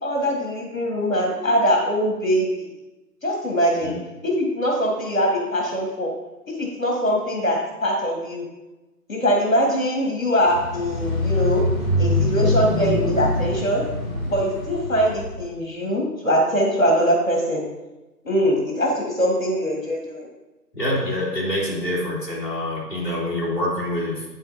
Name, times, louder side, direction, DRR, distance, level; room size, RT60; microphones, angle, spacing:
voice 1, 0.0-2.6 3.2-3.9 4.2-6.1 6.5-8.4 9.1-11.6 12.0-13.8 14.2-17.6 18.2-20.3, equal, 55° left, -1 dB, 1.8 m, -22 dB
sound 1, 10.5-15.4, left 1 dB, 10° right, 2.2 m, -24 dB
voice 2, 20.7-24.2, left 1 dB, 15° left, -11 dB, 2.4 m, -26 dB
9.1 x 8.6 x 2.7 m, 1.0 s
figure-of-eight pair, 165°, 48 cm